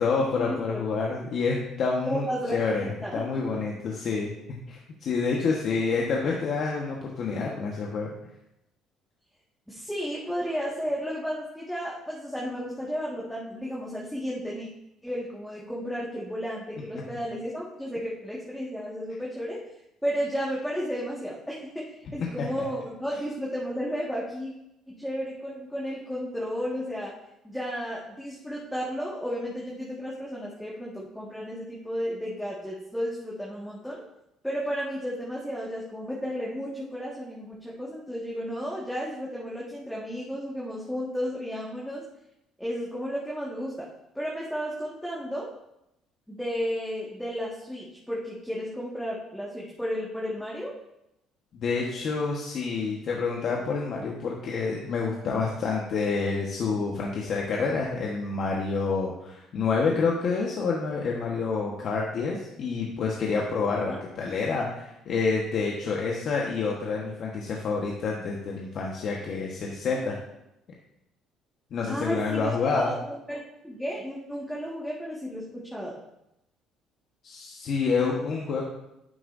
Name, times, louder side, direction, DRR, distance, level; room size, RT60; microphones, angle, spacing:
voice 1, 0.0-2.3 2.5-4.3 4.7-8.1 51.6-70.1 71.7-72.9 77.2-78.6, left 4 dB, 60° left, -2 dB, 1.3 m, -28 dB
voice 2, 2.1-3.2 9.7-14.7 15.0-19.6 20.0-24.5 24.9-27.1 27.4-34.0 34.4-42.0 42.6-43.9 44.1-45.5 46.3-50.8 63.9-64.0 71.9-73.0 73.3-76.0, equal, ahead, -5 dB, 1.8 m, -33 dB
10.5 x 7.7 x 2.7 m, 0.87 s
supercardioid pair, 85°, 0 cm